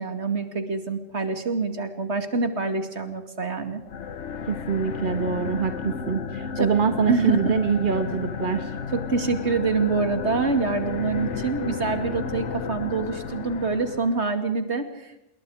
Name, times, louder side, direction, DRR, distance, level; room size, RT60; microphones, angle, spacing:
voice 1, 0.0-3.8 6.6-6.7 7.1-7.5 8.9-15.2, right 4 dB, 70° right, 7 dB, 2.8 m, -26 dB
sound 1, 3.8-14.3, left 5 dB, 85° left, 1.3 m, -33 dB
voice 2, 4.5-8.7, right 6 dB, 45° right, 7 dB, 1.6 m, -24 dB
28.0 x 21.5 x 5.0 m, 0.87 s
omnidirectional pair, 1.2 m